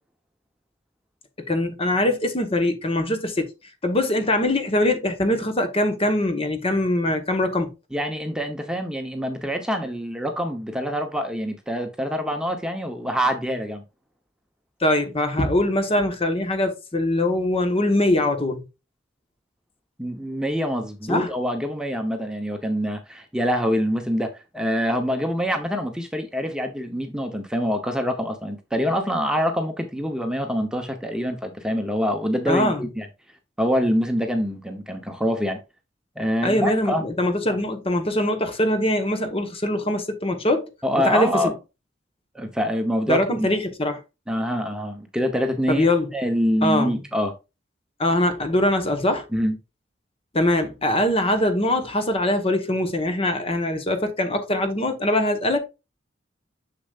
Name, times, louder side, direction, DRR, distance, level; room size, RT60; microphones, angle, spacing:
voice 1, 1.5-3.5 3.8-7.7 14.8-18.7 21.1-21.3 32.5-32.8 36.4-40.7 41.0-41.5 43.1-44.0 45.7-46.1 46.6-47.0 48.0-49.3 50.3-55.6, left 1 dB, 30° left, 1.2 m, -22 dB
voice 2, 7.9-13.8 20.0-33.1 33.6-35.6 36.2-37.1 40.8-41.5 42.3-43.5 44.3-45.9 46.1-47.3 49.3-49.6, equal, 5° right, 0.9 m, -25 dB
6.9 x 6.8 x 2.5 m
head